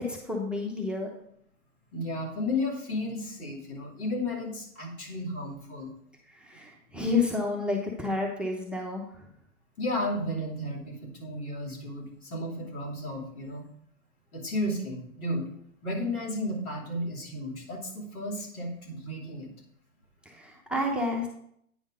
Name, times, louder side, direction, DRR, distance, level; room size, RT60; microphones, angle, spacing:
voice 1, 0.1-1.1 6.3-9.2 20.3-21.3, left 3 dB, ahead, 0 dB, 0.8 m, -30 dB
voice 2, 1.9-5.9 9.8-13.6 14.3-15.4 15.8-19.5, left 1 dB, 90° left, -3 dB, 2.9 m, -33 dB
9.3 x 3.7 x 5.0 m, 0.69 s
hypercardioid pair, 125°, 43 cm